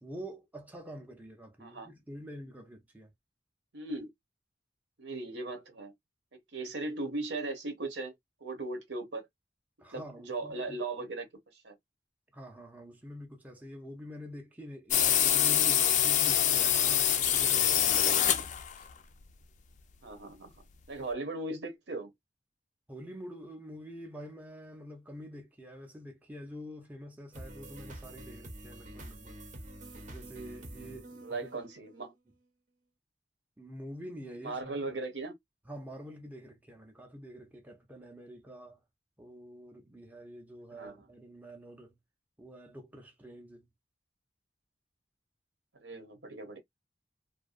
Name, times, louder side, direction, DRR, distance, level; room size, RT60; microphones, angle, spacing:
voice 1, 0.0-3.1 9.8-11.1 12.3-18.1 22.9-29.4 30.1-31.5 33.6-34.9 35.7-38.8 39.2-42.0 42.4-43.7, equal, 10° right, 0.6 m, -46 dB
voice 2, 1.6-1.9 3.7-4.1 5.0-5.9 6.5-8.1 8.4-9.3 9.9-11.3 11.6-11.7 20.0-20.5 20.9-22.1 31.2-32.1 34.4-35.3 40.8-41.0 45.8-46.6, right 2 dB, 75° right, 1.0 m, -38 dB
sound 1, 14.9-18.9, left 10 dB, 45° left, 0.4 m, -25 dB
sound 2, 27.3-32.1, right 1 dB, 45° right, 0.8 m, -47 dB
2.6 x 2.2 x 2.4 m
head